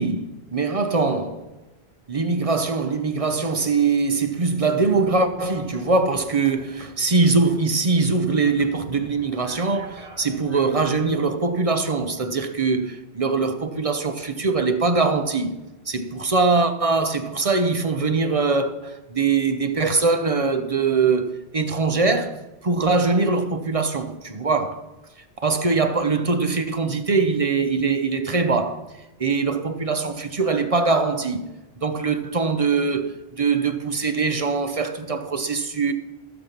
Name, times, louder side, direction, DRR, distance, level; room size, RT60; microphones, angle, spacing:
voice 1, 0.0-1.5 2.1-15.5 15.9-24.8 25.4-28.8 29.2-31.5 31.8-35.9, right 4 dB, 35° right, 0.8 m, -22 dB
sound 1, 5.0-11.0, right 2 dB, 85° right, 2.3 m, -47 dB
14.5 x 6.2 x 5.8 m
omnidirectional pair, 1.1 m